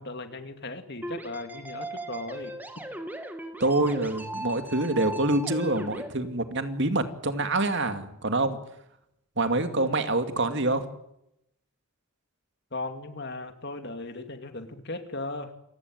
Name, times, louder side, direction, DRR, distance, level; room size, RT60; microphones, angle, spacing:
voice 1, 0.0-2.5 12.7-15.5, left 2 dB, 50° left, 7 dB, 2.6 m, -37 dB
sound 1, 1.0-6.1, right 1 dB, 10° right, 2.5 m, -38 dB
voice 2, 3.6-8.6 9.4-10.8, right 2 dB, 55° right, 8 dB, 2.4 m, -26 dB
28.0 x 16.0 x 9.3 m, 0.81 s
head